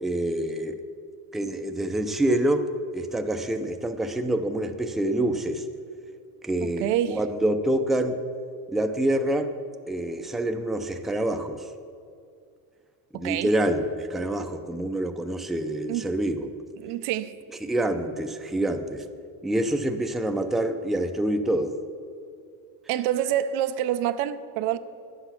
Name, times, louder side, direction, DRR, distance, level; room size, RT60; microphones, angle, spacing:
voice 1, 0.0-0.8 1.3-2.7 2.9-5.6 6.4-8.2 8.7-9.5 9.9-11.6 13.1-16.5 17.6-19.0 19.4-21.8, right 1 dB, ahead, 6 dB, 0.4 m, -26 dB
voice 2, 6.6-7.2 13.1-13.5 15.9-16.1 16.8-17.3 22.9-24.8, right 11 dB, 85° right, 11 dB, 0.6 m, -27 dB
10.5 x 8.0 x 5.8 m, 2.3 s
cardioid pair, 125°, 37 cm